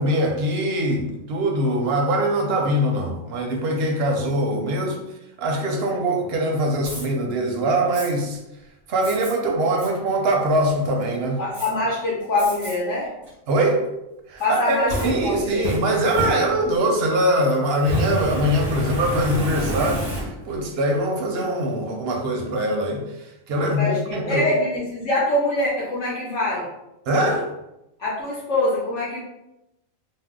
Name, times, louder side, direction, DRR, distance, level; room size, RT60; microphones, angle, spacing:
voice 1, 0.0-5.0 5.4-8.4 8.9-11.4 13.5-13.8 14.3-23.0 23.5-24.5 27.1-27.5, right 1 dB, 60° right, 1 dB, 0.7 m, -22 dB
Fire, 6.8-7.1 7.9-8.1 9.0-9.3 9.8-9.9 10.4-10.9 11.5-11.7 12.4-12.7 13.2-13.3 14.4-16.9 17.7-20.6, right 1 dB, 25° right, 0.7 m, -29 dB
voice 2, 11.4-13.1 14.4-15.7 23.6-26.7 28.0-29.2, left 2 dB, 65° left, -6 dB, 0.9 m, -24 dB
2.6 x 2.0 x 3.5 m, 0.89 s
omnidirectional pair, 1.4 m